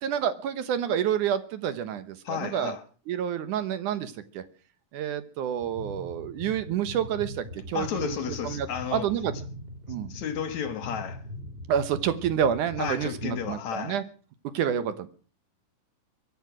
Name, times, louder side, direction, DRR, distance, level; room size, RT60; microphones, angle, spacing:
voice 1, 0.0-2.8 3.1-4.4 4.9-8.2 8.4-8.7 8.9-9.4 9.9-10.1 11.7-14.0 14.5-15.1, right 9 dB, 70° right, 2.4 m, -28 dB
voice 2, 2.2-2.8 7.7-9.1 10.1-11.2 12.8-14.0, left 8 dB, 60° left, 2.2 m, -32 dB
sound 1, 5.6-13.6, left 1 dB, 15° right, 3.2 m, -41 dB
23.5 x 9.5 x 6.1 m
omnidirectional pair, 4.2 m